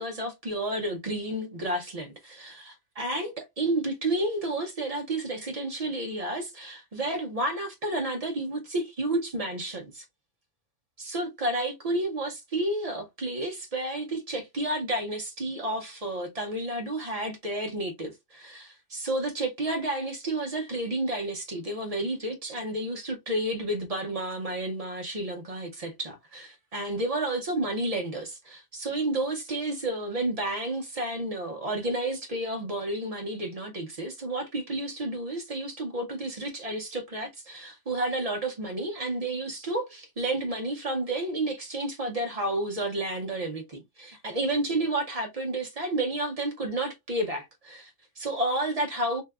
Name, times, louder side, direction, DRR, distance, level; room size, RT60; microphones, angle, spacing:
voice 1, 0.0-10.0 11.0-49.2, right 1 dB, 45° right, 0.5 m, -31 dB
3.2 x 2.7 x 2.3 m
omnidirectional pair, 1.3 m